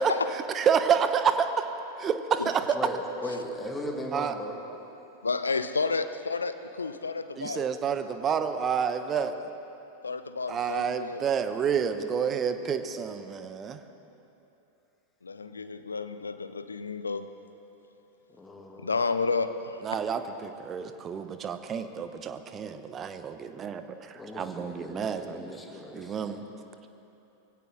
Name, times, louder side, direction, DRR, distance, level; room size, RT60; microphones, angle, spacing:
voice 1, 0.5-1.5 2.0-2.8 4.1-4.3 7.4-9.5 10.5-13.8 19.8-25.6 25.9-26.4, right 7 dB, 25° right, 9 dB, 0.9 m, -29 dB
voice 2, 2.7-4.6 18.3-18.9 24.1-26.3, equal, 10° left, 0 dB, 2.3 m, -38 dB
voice 3, 5.2-7.7 10.0-11.2 15.2-17.3 18.8-19.8, left 4 dB, 75° left, 11 dB, 0.6 m, -31 dB
22.5 x 16.5 x 3.8 m, 3.0 s
figure-of-eight pair, 90°, 0 cm